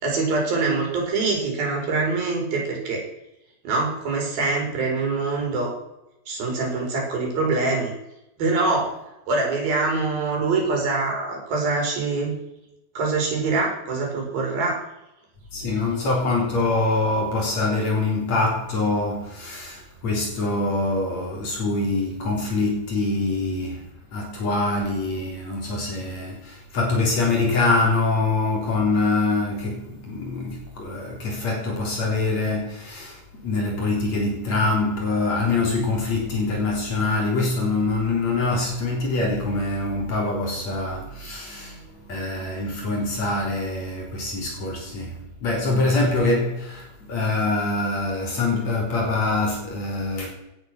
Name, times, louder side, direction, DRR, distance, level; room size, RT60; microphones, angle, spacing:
voice 1, 0.0-3.0 3.6-5.7 6.3-7.9 8.4-9.0 9.3-12.3 12.9-14.8 41.6-42.2, right 3 dB, 60° right, 6.3 m, -24 dB
voice 2, 15.5-23.8 24.1-50.3, left 2 dB, 45° left, 4.5 m, -24 dB
17.5 x 10.0 x 6.2 m
omnidirectional pair, 4.6 m